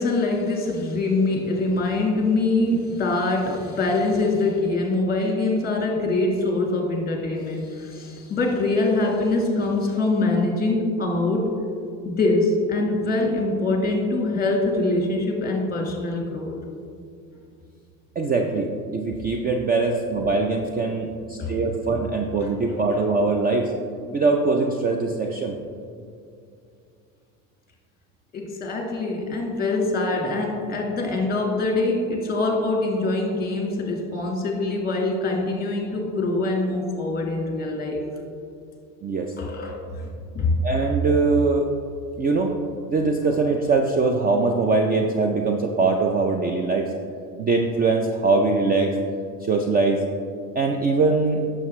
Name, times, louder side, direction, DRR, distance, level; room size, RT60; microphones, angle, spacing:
voice 1, 0.0-11.5 12.0-16.5 21.4-22.0 28.3-38.0 39.4-40.1 40.3-40.6, left 2 dB, 20° left, 1 dB, 1.6 m, -24 dB
voice 2, 18.2-23.7 24.1-25.6 39.0-39.3 40.6-41.7 42.2-42.6 42.9-46.9 47.4-49.0 49.4-50.0 50.6-51.4, right 3 dB, 25° right, 3 dB, 0.4 m, -22 dB
9.2 x 6.7 x 3.1 m, 2.4 s
supercardioid pair, 115°, 40 cm